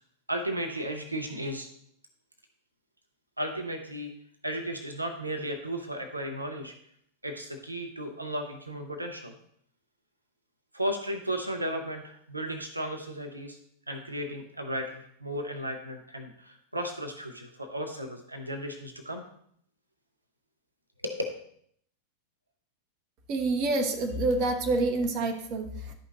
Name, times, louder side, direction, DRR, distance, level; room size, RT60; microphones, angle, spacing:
voice 1, 0.3-1.7 3.4-4.1 4.4-6.7 7.2-9.3 10.7-13.6 13.9-19.3 21.0-21.2, equal, 85° right, 3 dB, 0.9 m, -34 dB
voice 2, 23.3-25.9, right 2 dB, 40° right, 4 dB, 1.3 m, -27 dB
11.5 x 5.3 x 3.9 m, 0.66 s
figure-of-eight pair, 90°, 0 cm